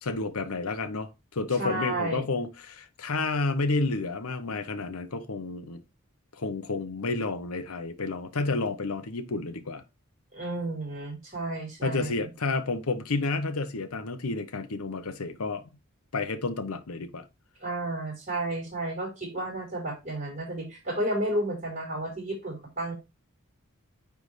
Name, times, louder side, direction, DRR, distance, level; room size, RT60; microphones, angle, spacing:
voice 1, 0.0-5.8 6.4-9.8 11.8-15.8 16.1-17.2, left 3 dB, 85° left, 0.9 m, -30 dB
voice 2, 1.6-2.2 10.3-12.3 17.6-22.9, right 1 dB, 35° right, 4.3 m, -32 dB
9.3 x 3.5 x 3.2 m
head